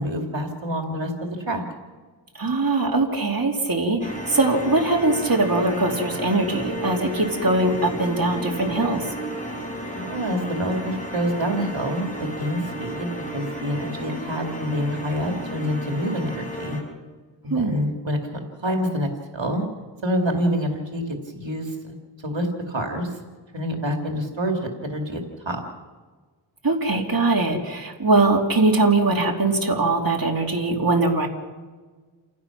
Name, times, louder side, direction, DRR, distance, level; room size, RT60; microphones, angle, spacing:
voice 1, 0.0-1.6 9.9-16.8 17.4-18.2 18.6-19.7 20.0-21.9 22.2-23.1 23.5-25.6, equal, 80° right, 2 dB, 2.6 m, -27 dB
voice 2, 2.4-4.0 4.3-9.0 17.5-17.8 26.6-31.3, right 2 dB, 50° right, 1 dB, 2.8 m, -21 dB
sound 1, 4.0-16.8, right 1 dB, 15° left, 5.6 m, -33 dB
29.0 x 16.0 x 6.0 m, 1.4 s
wide cardioid pair, 60°, 44 cm